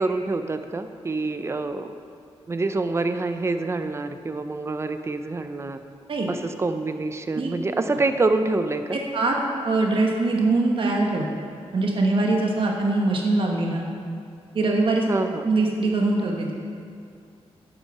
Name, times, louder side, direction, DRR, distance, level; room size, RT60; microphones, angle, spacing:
voice 1, 0.0-2.0 2.5-5.8 6.3-9.0 15.1-15.4, right 3 dB, 25° right, 8 dB, 0.5 m, -26 dB
voice 2, 9.1-11.3 11.7-13.8 14.5-15.0 15.4-16.5, right 2 dB, 55° right, 0 dB, 1.3 m, -22 dB
9.9 x 8.0 x 5.5 m, 2.4 s
wide cardioid pair, 150°, 11 cm